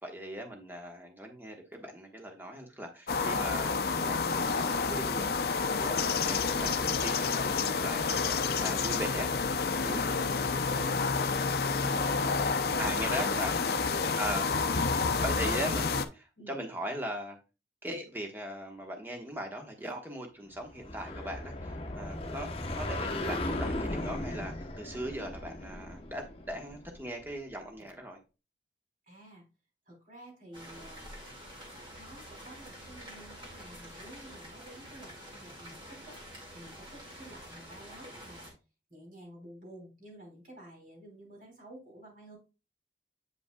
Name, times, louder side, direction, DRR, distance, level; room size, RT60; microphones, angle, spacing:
voice 1, 0.0-8.3 8.6-10.4 10.7-10.9 12.8-13.8 14.2-14.4 15.2-17.4 17.8-28.2, right 1 dB, 10° right, 2 dB, 1.2 m, -39 dB
sound 1, 3.1-16.1, left 4 dB, 60° left, 0.5 m, -29 dB
voice 2, 9.9-11.2 11.6-13.4 13.8-15.3 16.4-16.5 29.1-29.4 29.9-31.2 31.9-36.2 36.5-38.5 38.9-42.4, right 1 dB, 50° right, -1 dB, 3.7 m, -50 dB
sound 2, 20.7-27.3, left 1 dB, 35° left, 0.9 m, -37 dB
sound 3, 30.5-38.5, equal, 25° right, 2.0 m, -48 dB
8.2 x 5.2 x 2.3 m, 0.29 s
head